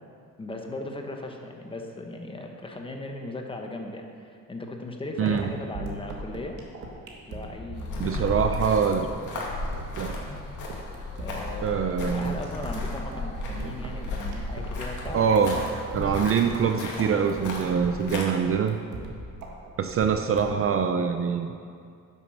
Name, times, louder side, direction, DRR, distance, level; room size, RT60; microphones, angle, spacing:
voice 1, 0.4-6.6 7.3-8.2 8.7-8.9 11.1-11.8 12.1-15.3, left 2 dB, 15° left, 2 dB, 1.1 m, -37 dB
voice 2, 5.2-5.5 8.0-9.1 10.0-10.1 11.6-12.4 15.1-18.8 19.8-21.6, right 6 dB, 45° right, 7 dB, 0.5 m, -24 dB
sound 1, 5.3-20.7, right 2 dB, 65° right, 1.8 m, -39 dB
sound 2, 7.7-18.2, left 2 dB, 65° left, 2.2 m, -35 dB
10.5 x 7.3 x 6.6 m, 2.3 s
cardioid pair, 155°, 32 cm